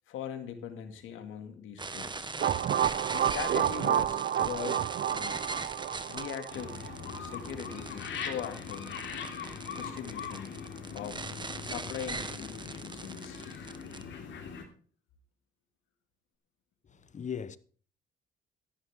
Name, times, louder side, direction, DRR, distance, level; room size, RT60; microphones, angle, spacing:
voice 1, 0.1-2.3 3.1-5.4 6.1-6.8 7.2-8.9 9.7-10.5 10.9-11.2 11.6-13.4, left 8 dB, 85° left, 2.2 m, -41 dB
sound 1, 1.8-14.0, right 3 dB, 25° right, 1.4 m, -40 dB
sound 2, 2.4-7.2, right 10 dB, 55° right, 0.7 m, -30 dB
sound 3, 6.5-14.7, left 6 dB, 65° left, 3.2 m, -41 dB
voice 2, 16.9-17.6, left 7 dB, 40° left, 1.0 m, -38 dB
13.5 x 11.0 x 3.6 m
cardioid pair, 90°, 20 cm